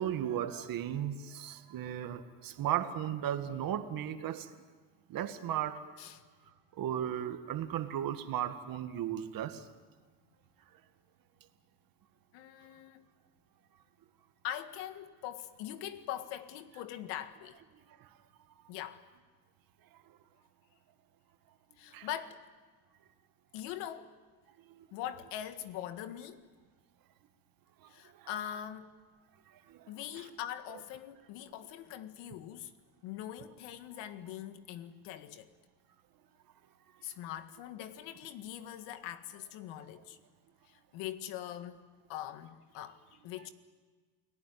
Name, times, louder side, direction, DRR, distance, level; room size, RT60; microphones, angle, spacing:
voice 1, 0.0-4.5 5.1-5.8 6.8-9.7 18.0-18.1 21.9-22.1 24.7-24.9 27.8-27.9 28.2-28.3 29.5-29.9, right 10 dB, 55° right, 2.1 m, -36 dB
voice 2, 12.3-13.1 14.4-17.6 18.7-19.0 21.8-22.4 23.5-24.2 24.9-26.5 27.9-28.9 29.9-32.7 33.0-35.5 37.0-40.2 40.7-43.5, left 11 dB, 85° left, 1.9 m, -42 dB
29.5 x 19.0 x 9.5 m
cardioid pair, 120°, 41 cm